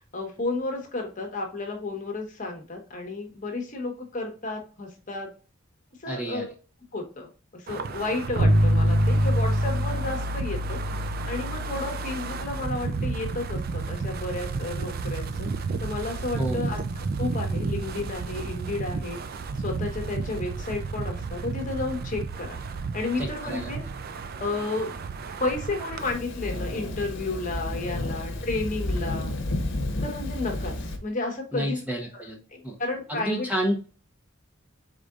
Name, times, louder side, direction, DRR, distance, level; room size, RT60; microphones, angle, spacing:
voice 1, 0.1-5.3 6.0-6.5 6.9-10.8 11.2-15.5 15.8-16.8 17.2-19.2 19.6-22.6 22.9-23.8 24.4-24.9 25.4-29.3 30.0-31.8 32.5-33.5, left 2 dB, 40° left, 3 dB, 1.1 m, -32 dB
voice 2, 6.1-6.5 16.4-16.8 23.2-23.7 31.5-32.4 32.6-32.8 33.1-33.9, equal, 5° right, -1 dB, 0.8 m, -30 dB
Wind, 7.7-26.1, right 4 dB, 45° right, 0.4 m, -33 dB
sound 1, 8.4-18.3, equal, 65° right, 0.8 m, -28 dB
Thunder, 26.0-31.0, left 1 dB, 60° left, 0.9 m, -31 dB
5.0 x 3.7 x 2.4 m, 0.36 s
head